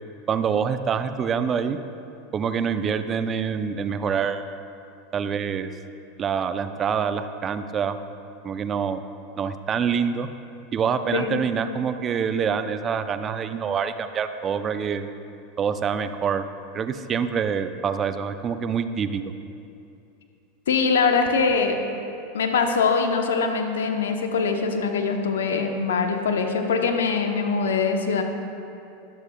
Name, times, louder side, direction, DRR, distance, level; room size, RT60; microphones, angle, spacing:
voice 1, 0.3-1.8 2.3-4.4 5.1-5.7 6.2-8.0 8.4-9.0 9.4-10.3 10.7-15.1 15.6-16.4 16.7-19.2, right 7 dB, 30° right, 9 dB, 0.5 m, -26 dB
voice 2, 11.1-11.4 20.7-21.8 22.3-28.2, left 5 dB, 80° left, 4 dB, 0.8 m, -23 dB
21.0 x 7.0 x 2.3 m, 2.7 s
hypercardioid pair, 95°, 0 cm